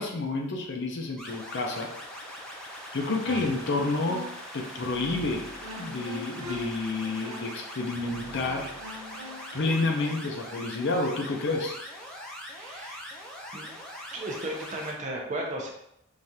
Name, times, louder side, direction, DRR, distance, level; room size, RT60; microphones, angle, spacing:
voice 1, 0.0-1.9 2.9-4.2 4.5-8.7 9.5-11.7, left 3 dB, 50° left, 2 dB, 0.6 m, -29 dB
sound 1, 1.2-14.9, equal, 5° left, 0.5 m, -42 dB
sound 2, 3.0-4.5 4.8-9.6, left 1 dB, 80° right, 0.6 m, -42 dB
voice 2, 12.5-13.0 13.5-13.8 14.1-15.7, right 1 dB, 35° right, -1 dB, 0.6 m, -35 dB
4.8 x 2.4 x 2.8 m, 0.77 s
head